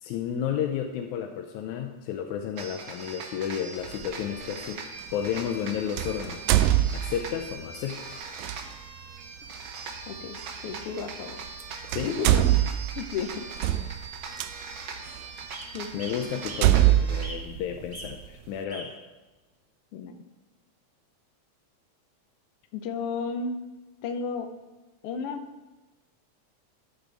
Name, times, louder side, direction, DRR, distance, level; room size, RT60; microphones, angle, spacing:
voice 1, 0.0-4.8 5.1-6.4 6.9-8.2 11.9-12.2 15.9-19.0, left 9 dB, 85° left, 3 dB, 2.1 m, -32 dB
sound 1, 2.6-17.3, right 4 dB, 65° right, 1.3 m, -41 dB
sound 2, 3.9-4.1 6.0-7.5 8.4-8.6 10.4-10.5 11.5-11.6 11.9-14.5 15.2-15.3 15.8-15.9 16.5-18.3, right 14 dB, 80° right, 1.9 m, -23 dB
voice 2, 10.1-10.4 10.6-11.4 12.1-12.7 13.0-13.4 15.7-16.0 19.9-20.2 22.7-23.6 24.0-24.5 25.0-25.4, left 5 dB, 70° left, 6 dB, 1.5 m, -33 dB
sound 3, 10.3-10.4 10.8-11.0 11.9-12.0 12.4-12.5 13.6-13.7 14.0-14.4 14.9-15.0 15.5-15.7 16.0-16.7 17.2-17.6 17.9-18.1 18.7-18.9 19.6-19.7, right 1 dB, 15° right, 0.8 m, -43 dB
12.0 x 8.1 x 3.4 m, 1.1 s
omnidirectional pair, 3.4 m